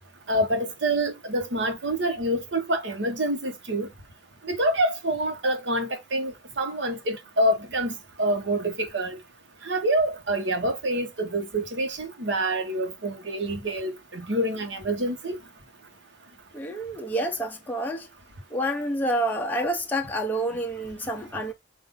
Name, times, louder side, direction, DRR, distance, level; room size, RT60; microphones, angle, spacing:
voice 1, 0.3-3.9 4.4-9.2 9.6-15.4, right 1 dB, 85° right, 1.2 m, -27 dB
voice 2, 16.5-18.1 18.5-21.5, right 1 dB, 10° left, 0.7 m, -28 dB
5.4 x 2.6 x 3.6 m
head